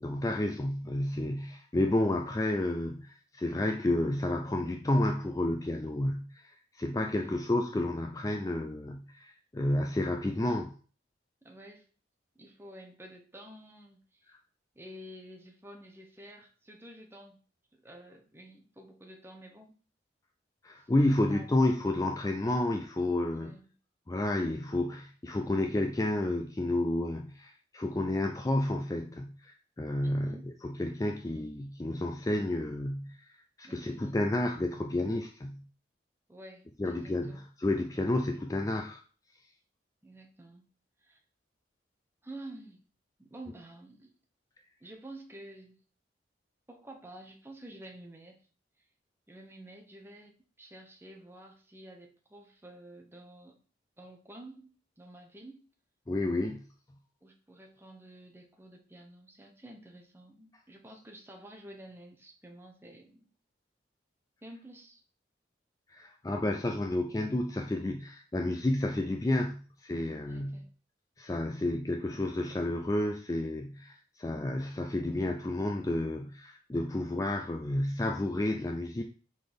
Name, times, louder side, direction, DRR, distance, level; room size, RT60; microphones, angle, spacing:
voice 1, 0.0-10.7 20.6-23.6 24.1-33.3 33.6-35.6 36.8-39.0 56.1-56.6 65.9-70.6 71.2-79.0, left 1 dB, 20° left, 0.3 m, -31 dB
voice 2, 7.0-7.5 11.4-11.9 12.3-14.3 14.7-17.4 17.7-19.7 20.8-21.5 23.3-23.7 30.0-30.4 33.6-34.6 36.3-37.4 40.0-40.6 41.0-41.2 42.2-42.8 43.2-44.1 44.8-45.8 46.7-48.4 49.3-53.6 54.0-55.7 57.2-63.3 64.4-65.0 70.3-70.7, right 1 dB, 10° right, 0.9 m, -50 dB
5.1 x 4.0 x 5.1 m
head